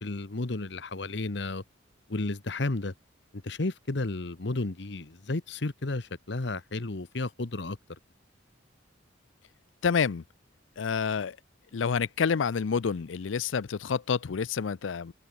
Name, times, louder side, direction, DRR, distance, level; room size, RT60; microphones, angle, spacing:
voice 1, 0.0-1.6 2.1-2.9 3.4-8.0, left 2 dB, 60° left, 1.1 m, -32 dB
voice 2, 9.8-10.2 10.8-11.4 11.7-15.1, left 6 dB, 80° left, 0.5 m, -28 dB
head